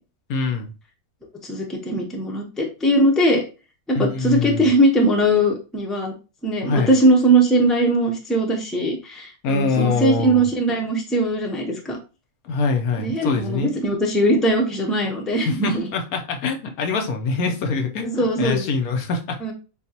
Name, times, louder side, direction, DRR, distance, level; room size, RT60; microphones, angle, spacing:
voice 1, 0.3-0.7 3.9-4.7 6.6-6.9 9.4-10.4 12.4-13.7 15.4-19.4, left 4 dB, 80° left, 4 dB, 1.3 m, -24 dB
voice 2, 1.4-3.4 3.9-6.1 6.4-12.0 13.0-15.9 18.0-18.6 19.4-19.5, right 1 dB, ahead, 1 dB, 0.6 m, -20 dB
7.0 x 2.3 x 2.8 m, 0.32 s
omnidirectional pair, 1.6 m